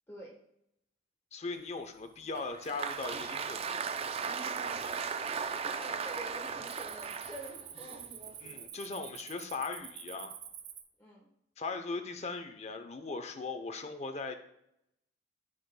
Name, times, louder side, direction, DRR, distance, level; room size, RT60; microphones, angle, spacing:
voice 1, 0.1-0.4 5.6-8.1 11.0-11.3, equal, 15° left, -4 dB, 1.1 m, -47 dB
voice 2, 1.3-3.8 8.4-10.3 11.6-14.3, left 3 dB, 40° left, 7 dB, 0.7 m, -39 dB
Cricket, 1.8-2.3 2.7-3.2 3.8-3.9 4.5-5.1 5.3-5.6 6.0-10.8, right 9 dB, 70° right, 1.0 m, -48 dB
Applause, 2.3-8.7, right 6 dB, 35° right, 0.4 m, -37 dB
sound 1, 4.9-7.2, right 3 dB, 50° right, 2.1 m, -58 dB
14.0 x 5.0 x 2.2 m, 0.79 s
head